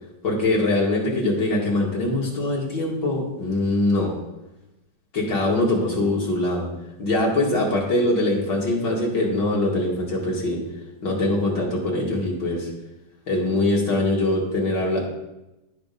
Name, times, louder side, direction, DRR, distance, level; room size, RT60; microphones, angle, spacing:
voice 1, 0.2-4.1 5.1-6.7 7.0-10.6 11.0-12.7 13.3-15.0, left 2 dB, 75° left, -3 dB, 2.6 m, -23 dB
10.5 x 5.1 x 5.3 m, 0.96 s
omnidirectional pair, 2.0 m